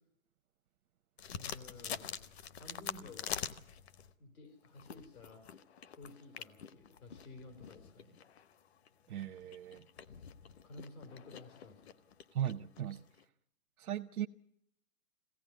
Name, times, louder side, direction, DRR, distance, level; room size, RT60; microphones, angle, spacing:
sound 1, 1.2-4.1 4.6-13.2, left 8 dB, 45° left, 0.9 m, -46 dB
voice 1, 1.3-2.2 2.5-3.4 4.2-5.4 5.9-8.2 10.6-12.0, left 3 dB, 85° left, 4 dB, 4.6 m, -53 dB
voice 2, 9.1-9.8 12.3-13.0 13.8-14.3, right 11 dB, 80° right, 5 dB, 0.8 m, -38 dB
22.5 x 17.0 x 9.3 m, 0.75 s
hypercardioid pair, 175°, 42 cm